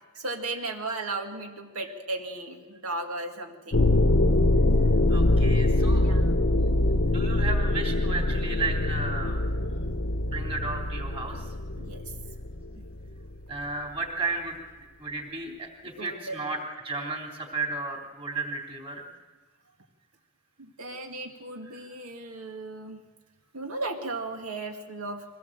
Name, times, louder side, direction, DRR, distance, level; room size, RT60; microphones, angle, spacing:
voice 1, 0.1-3.9 5.9-6.4 11.8-12.0 12.8-12.9 15.5-15.6 16.0-16.5 20.6-23.0 23.5-25.2, right 2 dB, 90° right, 3 dB, 2.1 m, -36 dB
sound 1, 3.7-13.2, left 2 dB, 55° left, 0.8 m, -24 dB
voice 2, 5.1-6.1 7.0-9.4 10.3-11.4 13.5-14.6 15.0-16.6 16.8-19.0 21.7-21.9, right 3 dB, 25° right, 1 dB, 3.4 m, -33 dB
23.0 x 18.0 x 7.5 m, 1.3 s
head